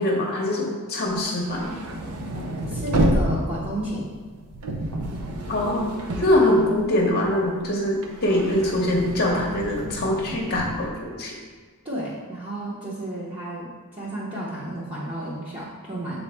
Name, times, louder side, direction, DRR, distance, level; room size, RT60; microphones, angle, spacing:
voice 1, 0.0-1.7 5.5-11.3, left 1 dB, 45° left, -2 dB, 0.8 m, -23 dB
sound 1, 1.1-7.2 7.6-10.9, right 1 dB, 85° right, 0.7 m, -29 dB
voice 2, 2.7-4.1 11.8-16.2, right 1 dB, 25° right, -8 dB, 0.9 m, -32 dB
7.1 x 4.0 x 3.4 m, 1.5 s
head